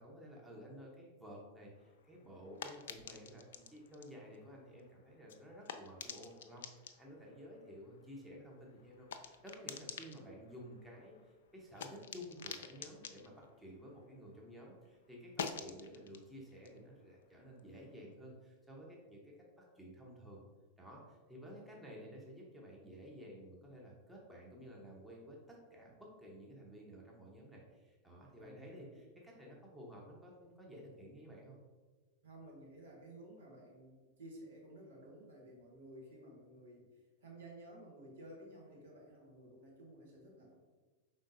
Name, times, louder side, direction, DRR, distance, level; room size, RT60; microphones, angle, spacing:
voice 1, 0.0-20.4 20.8-31.6, equal, 5° right, -3 dB, 0.9 m, -53 dB
sound 1, 1.8-14.5 14.8-18.1, left 7 dB, 60° left, 0.3 m, -50 dB
voice 2, 21.4-21.8 28.3-28.9 32.2-40.5, right 1 dB, 65° right, -3 dB, 1.3 m, -55 dB
5.2 x 3.7 x 2.6 m, 1.3 s
figure-of-eight pair, 90°, 0 cm